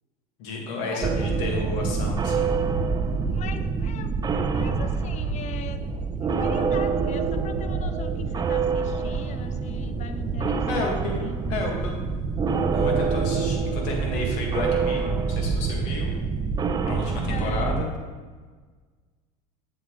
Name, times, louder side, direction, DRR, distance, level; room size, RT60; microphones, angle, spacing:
voice 1, 0.4-2.5 10.7-11.1 11.5-11.9 12.7-16.2 16.9-17.9, left 3 dB, 65° left, 0 dB, 1.9 m, -32 dB
sound 1, 1.0-17.8, right 5 dB, 20° right, 0.5 m, -26 dB
sound 2, 2.6-3.2 5.2-5.8 7.7-8.3 10.3-10.8 12.8-13.4 15.3-15.9, right 3 dB, 75° right, 1.0 m, -34 dB
voice 2, 3.3-4.1 4.5-5.9 6.2-11.8 17.2-17.9, left 7 dB, 35° left, 10 dB, 0.6 m, -40 dB
7.7 x 7.5 x 3.2 m, 1.5 s
supercardioid pair, 95°, 20 cm